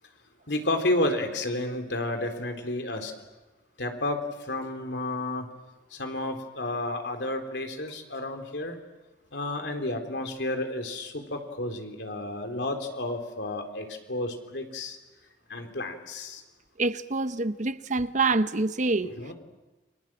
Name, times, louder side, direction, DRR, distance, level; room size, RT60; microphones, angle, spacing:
voice 1, 0.5-3.1 3.8-4.2 4.5-5.4 6.0-8.8 9.3-15.0 15.5-16.4 19.2-19.3, left 1 dB, 70° left, 3.9 m, -31 dB
voice 2, 16.8-19.1, right 3 dB, 45° right, 0.9 m, -26 dB
30.0 x 24.5 x 7.6 m
head